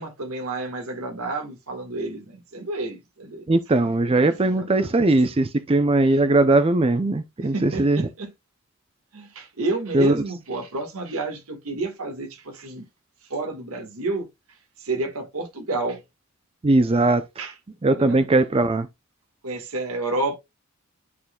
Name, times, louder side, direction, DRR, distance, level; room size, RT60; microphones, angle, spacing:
voice 1, 0.0-3.5 3.8-4.9 6.1-6.2 7.4-8.3 9.1-12.8 13.3-14.3 14.8-16.0 17.4-17.5 17.9-18.3 19.4-20.4, right 2 dB, 90° right, 1.6 m, -30 dB
voice 2, 3.5-8.1 9.9-10.1 16.6-17.2 17.8-18.9, right 2 dB, 25° right, 0.5 m, -19 dB
11.0 x 4.0 x 2.2 m
head